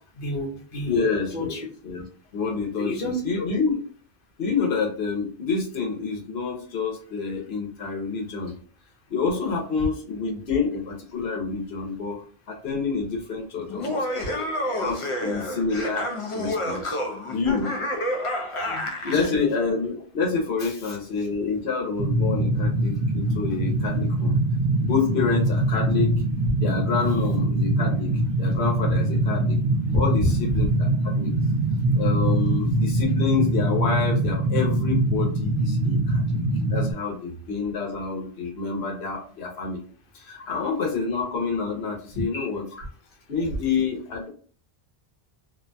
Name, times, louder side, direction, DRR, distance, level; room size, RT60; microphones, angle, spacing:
voice 1, 0.2-1.7 2.8-3.5 18.6-19.5 20.6-21.0 30.2-30.3 30.6-30.7 42.1-42.9, left 1 dB, 60° left, -1 dB, 1.0 m, -31 dB
voice 2, 0.9-2.0 2.3-3.7 4.4-8.5 9.1-14.3 14.7-16.1 16.3-17.0 17.3-17.8 19.1-24.4 24.8-26.1 26.5-28.1 28.4-29.6 29.9-30.2 30.5-31.3 32.0-36.4 36.7-39.8 40.1-42.6 43.3-44.3, left 5 dB, 90° left, 0 dB, 1.0 m, -28 dB
Laughter, 13.7-19.3, left 1 dB, 45° left, 0.4 m, -29 dB
sound 1, 22.0-36.9, right 1 dB, 60° right, 0.9 m, -23 dB
2.5 x 2.2 x 2.6 m, 0.44 s
omnidirectional pair, 1.0 m